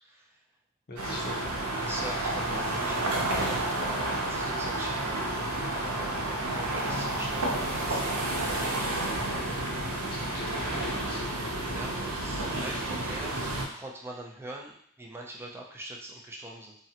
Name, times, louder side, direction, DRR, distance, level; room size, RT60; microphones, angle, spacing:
voice 1, 0.0-0.3 1.1-1.3 1.7-5.4 5.7-9.1 11.5-13.5 13.7-16.7, right 1 dB, 10° right, -1 dB, 0.4 m, -43 dB
voice 2, 0.9-1.6 9.8-11.9, left 2 dB, 45° left, -3 dB, 0.6 m, -42 dB
sound 1, 1.0-13.7, right 1 dB, 85° right, 0.7 m, -30 dB
3.7 x 2.0 x 2.8 m, 0.69 s
head